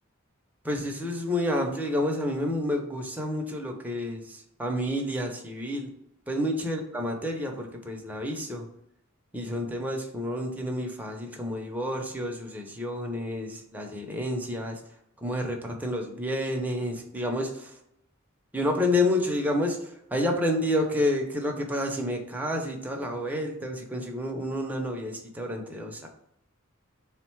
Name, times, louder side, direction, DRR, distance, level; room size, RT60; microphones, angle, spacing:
voice 1, 0.6-5.9 6.3-8.6 9.3-14.8 15.2-17.7 18.5-19.8 20.1-26.1, left 1 dB, 10° right, 2 dB, 0.5 m, -29 dB
3.7 x 2.1 x 4.4 m, 0.78 s
head